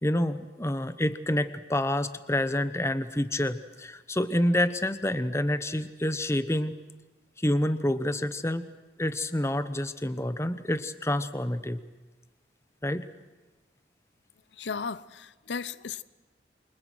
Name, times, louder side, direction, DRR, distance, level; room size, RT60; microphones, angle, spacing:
voice 1, 0.0-6.7 7.4-8.7 9.0-11.8 12.8-13.1, left 1 dB, 15° left, 1.0 m, -28 dB
voice 2, 14.5-16.0, left 5 dB, 80° left, 0.7 m, -35 dB
28.5 x 25.0 x 6.3 m
head